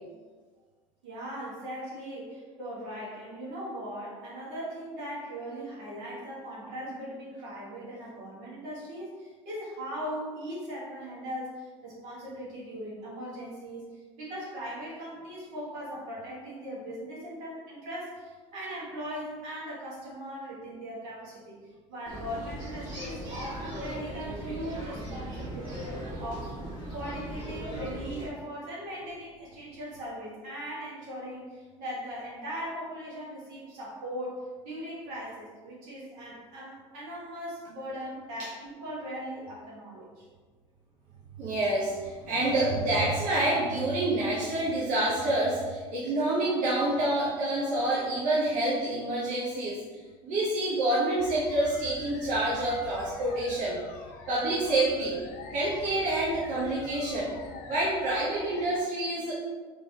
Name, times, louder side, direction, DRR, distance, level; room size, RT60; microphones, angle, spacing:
voice 1, 1.0-21.6 21.9-25.9 26.2-26.5 26.9-40.2, equal, 75° right, -6 dB, 1.4 m, -39 dB
sound 1, 22.1-28.3, right 1 dB, 30° right, 1.4 m, -38 dB
voice 2, 41.4-49.8 50.2-53.8 54.3-55.2 55.5-57.3 57.6-59.3, right 1 dB, 55° right, -7 dB, 0.9 m, -27 dB
sound 2, 51.2-58.8, left 4 dB, 65° left, 0.5 m, -46 dB
3.4 x 3.0 x 2.7 m, 1.4 s
hypercardioid pair, 80°, 16 cm